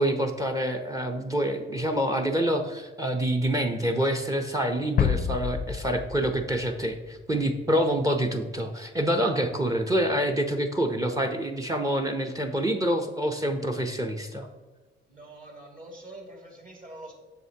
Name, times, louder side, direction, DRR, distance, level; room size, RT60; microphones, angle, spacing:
voice 1, 0.0-14.5, right 1 dB, 15° right, 6 dB, 0.7 m, -27 dB
sound 1, 5.0-7.5, left 8 dB, 50° left, 0.5 m, -29 dB
voice 2, 15.1-17.1, right 1 dB, 40° right, 1 dB, 2.2 m, -45 dB
7.7 x 6.4 x 2.9 m, 1.3 s
cardioid pair, 90°, 20 cm